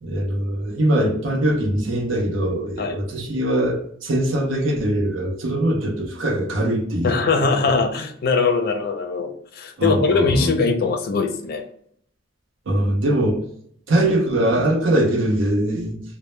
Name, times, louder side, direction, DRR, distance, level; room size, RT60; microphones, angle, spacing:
voice 1, 0.0-7.1 9.8-10.6 12.7-13.5 13.9-16.0, right 1 dB, 85° right, 0.6 m, -22 dB
voice 2, 7.0-11.6, left 4 dB, 50° left, 0.4 m, -21 dB
2.1 x 2.0 x 3.0 m
head